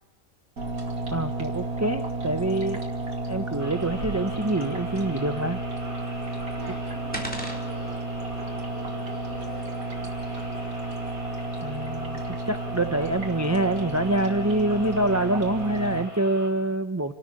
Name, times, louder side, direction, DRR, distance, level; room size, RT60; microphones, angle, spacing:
sound 1, 0.6-16.0, right 2 dB, 65° right, 3.3 m, -32 dB
voice 1, 1.1-2.9 3.3-5.6 11.6-17.1, right 1 dB, 15° right, 8 dB, 0.6 m, -26 dB
sound 2, 3.6-16.5, right 1 dB, 30° right, 5.5 m, -44 dB
sound 3, 6.0-11.5, equal, 5° left, 3.7 m, -43 dB
voice 2, 6.5-10.6, left 1 dB, 35° left, 0 dB, 7.9 m, -47 dB
29.0 x 13.0 x 8.8 m, 1.1 s
omnidirectional pair, 1.6 m